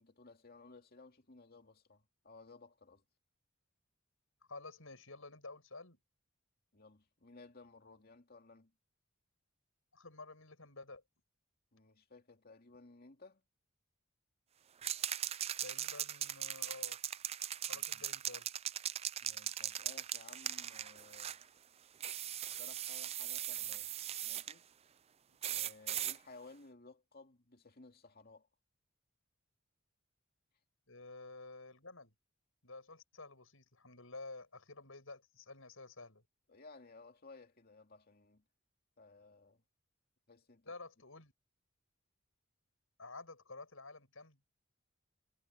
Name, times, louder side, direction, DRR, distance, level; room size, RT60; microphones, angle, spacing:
voice 1, 0.0-3.0 6.7-8.7 11.7-13.4 17.7-18.0 19.2-21.4 22.5-23.9 24.2-24.7 25.4-28.5 36.5-38.4 39.0-39.6 40.3-40.7, left 3 dB, 45° left, 2.4 m, -58 dB
voice 2, 4.5-6.0 9.9-11.0 15.6-17.0 17.7-18.5 30.9-32.1 32.6-36.2 40.6-41.3 43.0-44.4, left 3 dB, 70° left, 7.5 m, -51 dB
sound 1, 14.8-21.4 22.0-24.5 25.4-26.2, right 11 dB, 30° right, 0.4 m, -39 dB
head